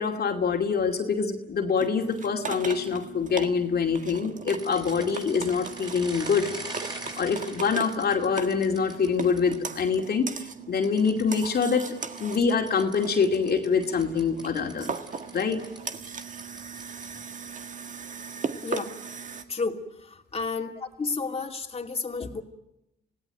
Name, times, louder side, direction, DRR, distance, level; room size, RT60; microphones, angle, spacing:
voice 1, 0.0-6.5 7.2-11.9 12.2-14.9 15.3-15.6, left 5 dB, 50° left, 2 dB, 2.6 m, -25 dB
sound 1, 1.8-19.4, right 5 dB, 40° right, 1.8 m, -39 dB
sound 2, 4.5-10.0 10.8-17.2, right 2 dB, 20° right, 6.9 m, -43 dB
voice 2, 18.6-19.0 19.5-20.7 21.0-22.4, left 4 dB, 30° left, 1 dB, 2.7 m, -31 dB
27.0 x 17.5 x 9.1 m, 0.86 s
cardioid pair, 90°, 20 cm